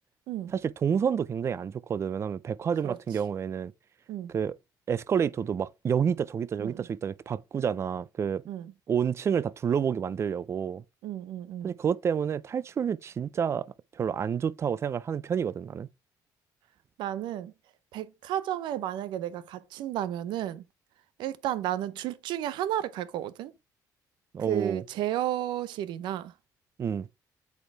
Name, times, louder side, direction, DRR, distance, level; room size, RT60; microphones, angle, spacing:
voice 1, 0.5-3.7 4.3-4.6 4.9-8.4 8.9-10.8 11.6-13.7 14.0-15.9 24.3-24.8 26.8-27.1, right 7 dB, 35° right, 0.4 m, -29 dB
voice 2, 11.0-11.7 17.0-17.5 17.9-20.6 21.2-23.5 24.5-26.3, right 12 dB, 85° right, 0.6 m, -32 dB
8.2 x 4.4 x 3.3 m
cardioid pair, 120°, 8 cm